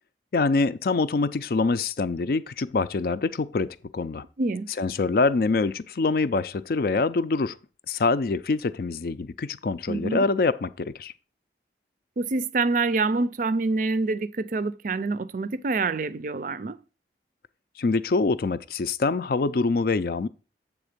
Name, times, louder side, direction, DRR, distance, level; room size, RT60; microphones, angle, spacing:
voice 1, 0.3-4.2 4.8-7.6 7.9-11.1 17.8-20.3, left 3 dB, 55° left, 0.4 m, -25 dB
voice 2, 4.4-4.7 9.9-10.3 12.2-16.8, right 3 dB, 45° right, 0.4 m, -26 dB
7.8 x 3.6 x 6.6 m
head